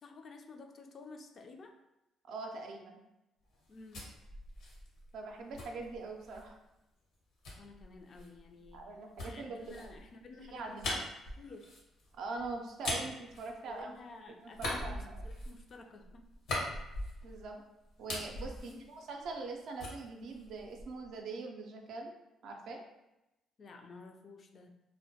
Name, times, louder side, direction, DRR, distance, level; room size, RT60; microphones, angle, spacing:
voice 1, 0.0-1.7 3.7-4.1 7.6-8.9 9.2-11.0 11.4-11.8 13.7-16.2 18.6-18.8 23.6-24.7, left 3 dB, 50° left, 4 dB, 0.3 m, -52 dB
voice 2, 2.2-3.0 5.1-6.6 8.7-9.9 10.5-11.0 12.2-13.9 14.4-15.2 17.2-17.6 18.0-22.1 22.4-22.8, right 3 dB, 70° right, 2 dB, 0.4 m, -43 dB
sound 1, 3.5-6.5 7.4-14.1 14.5-17.5 17.8-19.5 19.8-21.1, left 1 dB, 75° left, 0.8 m, -42 dB
2.1 x 2.1 x 2.7 m, 0.95 s
supercardioid pair, 70°, 0 cm